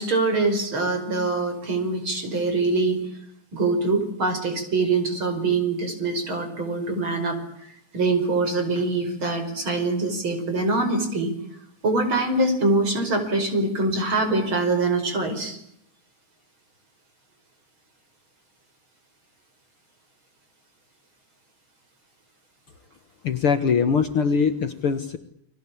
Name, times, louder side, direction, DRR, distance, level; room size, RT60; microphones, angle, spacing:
voice 1, 0.0-3.0 3.5-7.4 7.9-11.3 11.8-15.6, right 3 dB, 40° right, 7 dB, 6.0 m, -24 dB
voice 2, 23.2-25.2, left 6 dB, 55° left, 9 dB, 2.0 m, -22 dB
30.0 x 22.0 x 8.6 m, 0.74 s
omnidirectional pair, 3.4 m